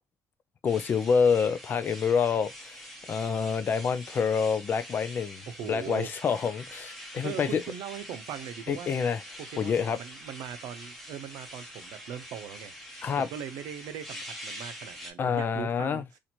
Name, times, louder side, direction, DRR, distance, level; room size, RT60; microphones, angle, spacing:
voice 1, 0.6-2.8 3.1-5.4 5.7-7.6 8.7-9.2 9.6-10.0 13.0-13.3 15.2-16.0, left 6 dB, 35° left, 0.4 m, -27 dB
sound 1, 0.6-15.1, equal, ahead, 0.9 m, -45 dB
voice 2, 5.5-6.1 7.2-8.9 9.4-12.7 13.2-16.0, right 9 dB, 85° right, 0.7 m, -40 dB
2.9 x 2.6 x 4.3 m
cardioid pair, 155°, 6 cm